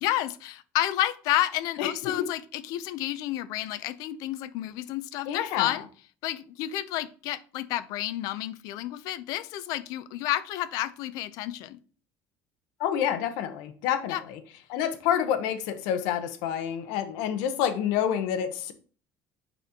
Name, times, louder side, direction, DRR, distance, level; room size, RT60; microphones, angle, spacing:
voice 1, 0.0-5.8 6.2-11.8 14.1-14.2, left 14 dB, 65° left, 0.5 m, -30 dB
voice 2, 1.8-2.3 5.3-5.7 12.8-14.4 14.7-18.7, left 9 dB, 90° left, 0.9 m, -28 dB
9.3 x 4.2 x 2.8 m
cardioid pair, 165°, 7 cm